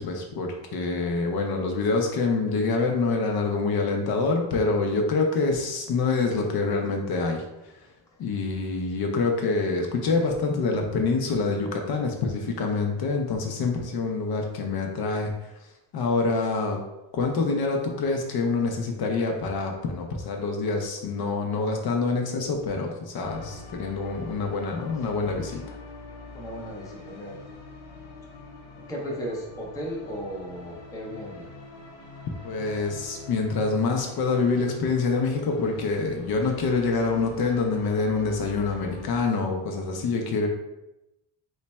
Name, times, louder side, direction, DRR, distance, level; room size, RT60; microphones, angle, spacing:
voice 1, 0.0-7.7 8.2-15.5 15.9-16.8 17.1-25.8 32.4-40.5, left 3 dB, 55° left, 2 dB, 0.6 m, -26 dB
sound 1, 23.2-39.2, left 3 dB, 80° left, 0.9 m, -44 dB
voice 2, 26.3-27.4 28.8-31.5, equal, 10° left, -3 dB, 0.5 m, -35 dB
3.1 x 2.2 x 4.1 m, 0.94 s
cardioid pair, 160°, 46 cm